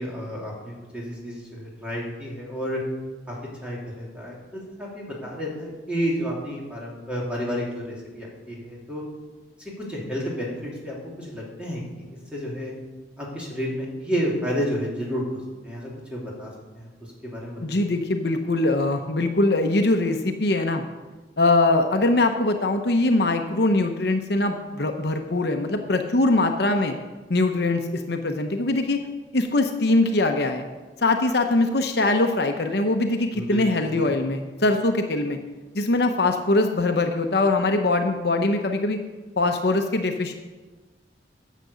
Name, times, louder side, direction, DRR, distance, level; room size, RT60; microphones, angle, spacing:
voice 1, 0.0-2.8 3.3-3.4 3.6-9.0 9.8-12.0 12.3-12.7 13.2-16.9 17.3-17.9 33.3-34.1, equal, 5° right, -5 dB, 2.9 m, -31 dB
voice 2, 17.6-20.8 21.4-26.9 27.3-29.0 29.3-30.7 31.0-35.4 35.7-39.0 39.4-40.3, left 2 dB, 60° left, 5 dB, 0.8 m, -22 dB
10.0 x 7.5 x 6.9 m, 1.2 s
head